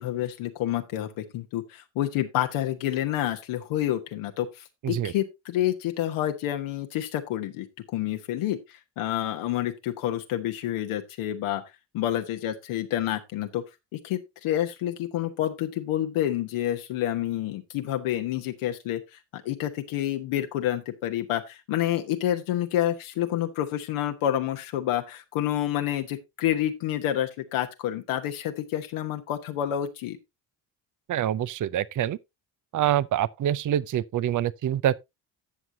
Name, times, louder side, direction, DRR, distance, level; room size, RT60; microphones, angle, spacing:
voice 1, 0.0-8.6 9.0-11.6 11.9-13.6 13.9-19.0 19.3-30.2, left 12 dB, 75° left, 1.2 m, -28 dB
voice 2, 31.1-32.2 32.7-35.0, right 11 dB, 40° right, 0.6 m, -25 dB
15.0 x 6.1 x 2.7 m
supercardioid pair, 55°, 50 cm